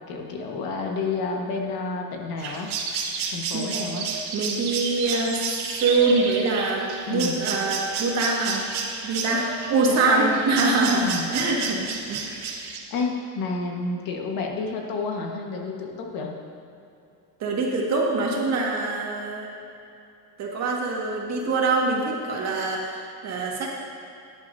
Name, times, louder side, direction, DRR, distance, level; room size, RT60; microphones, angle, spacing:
voice 1, 0.1-2.7 3.3-4.1 7.0-7.4 9.9-10.4 11.0-11.3 12.9-16.3, left 3 dB, 60° left, 1 dB, 1.6 m, -30 dB
sound 1, 2.4-12.8, right 5 dB, 65° right, 1.5 m, -31 dB
voice 2, 4.3-8.6 9.0-12.4 17.4-19.6 20.4-23.7, right 3 dB, 40° right, -2 dB, 1.9 m, -24 dB
16.5 x 10.5 x 2.8 m, 2.7 s
cardioid pair, 165°, 40 cm